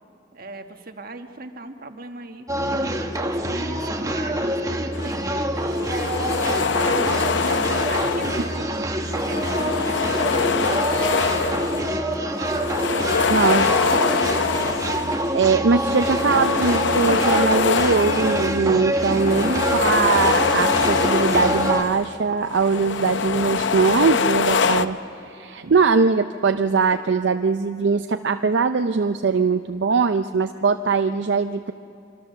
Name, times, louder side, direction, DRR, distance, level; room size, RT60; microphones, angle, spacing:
voice 1, 0.3-5.3 5.6-6.5 6.8-7.1 7.9-12.4 12.9-14.1 19.1-19.8, right 2 dB, 50° right, 6 dB, 1.4 m, -38 dB
sound 1, 2.5-21.8, right 1 dB, 20° right, 1.3 m, -26 dB
sound 2, 4.9-5.2 5.6-8.7 9.0-12.1 12.4-15.3 15.7-22.1 22.4-24.8, left 5 dB, 75° left, 0.7 m, -24 dB
voice 2, 13.3-13.7 15.0-31.7, right 4 dB, 70° right, 8 dB, 0.5 m, -21 dB
25.5 x 25.0 x 6.8 m, 2.6 s
head